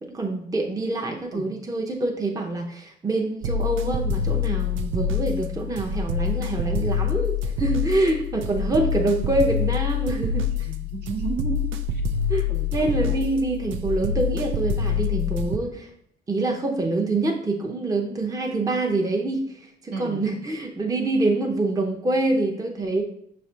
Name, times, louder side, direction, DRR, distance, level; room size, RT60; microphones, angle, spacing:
voice 1, 0.1-10.7 12.3-15.9 16.3-23.0, right 2 dB, 20° right, 2 dB, 0.6 m, -26 dB
sound 1, 3.4-15.6, left 5 dB, 80° right, 0.4 m, -26 dB
voice 2, 10.6-11.7 12.5-12.7 12.9-13.1 19.9-20.3, right 3 dB, 55° right, 1 dB, 0.9 m, -33 dB
5.9 x 3.2 x 2.8 m, 0.68 s
cardioid pair, 90°, 20 cm